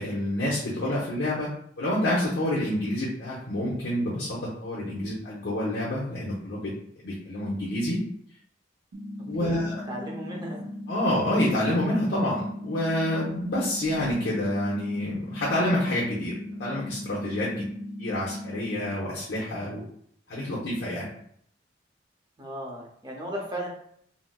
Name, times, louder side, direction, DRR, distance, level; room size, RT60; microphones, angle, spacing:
voice 1, 0.0-1.5 1.8-6.7 7.0-8.0 9.3-9.8 10.9-17.6 18.0-19.8 20.3-21.1, left 1 dB, 75° left, -6 dB, 0.7 m, -28 dB
sound 1, 8.9-18.9, left 1 dB, 85° right, 0.5 m, -38 dB
voice 2, 9.4-10.6 22.4-23.7, equal, 25° right, -1 dB, 0.6 m, -36 dB
3.9 x 2.0 x 2.2 m, 0.66 s
head